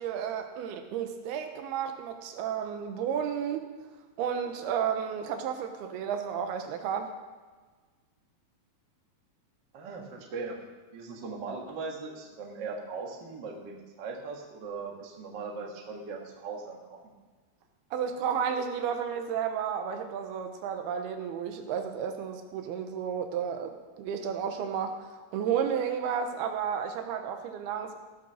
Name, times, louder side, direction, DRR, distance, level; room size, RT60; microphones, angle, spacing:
voice 1, 0.0-3.7 4.2-7.1 17.9-28.0, right 8 dB, 80° right, 6 dB, 2.8 m, -32 dB
voice 2, 9.7-10.6 10.9-17.1, right 4 dB, 50° right, 0 dB, 1.4 m, -39 dB
16.0 x 5.9 x 6.2 m, 1.4 s
omnidirectional pair, 4.5 m